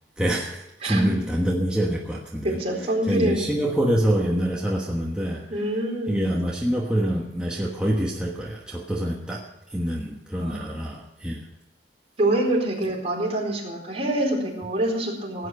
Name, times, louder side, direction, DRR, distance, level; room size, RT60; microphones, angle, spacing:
voice 1, 0.2-2.6 3.1-5.7 6.1-11.5, right 1 dB, 5° right, -2 dB, 1.3 m, -26 dB
voice 2, 0.8-1.1 2.4-3.5 5.5-6.3 10.4-10.8 12.2-15.5, right 1 dB, 35° right, -2 dB, 4.2 m, -26 dB
16.5 x 9.2 x 6.6 m, 0.96 s
head